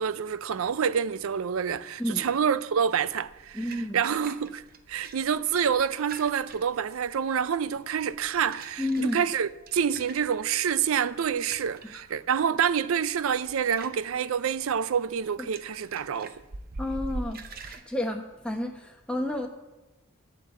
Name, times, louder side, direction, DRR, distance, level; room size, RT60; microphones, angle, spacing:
voice 1, 0.0-3.6 3.9-4.6 4.9-16.4, right 7 dB, 80° right, 0.4 m, -27 dB
sound 1, 3.1-17.8, right 3 dB, 45° right, 0.7 m, -45 dB
voice 2, 3.5-4.0 8.8-9.2 11.9-12.0 15.4-15.5 16.8-19.5, left 1 dB, 5° left, 1.0 m, -31 dB
9.2 x 8.1 x 7.2 m
head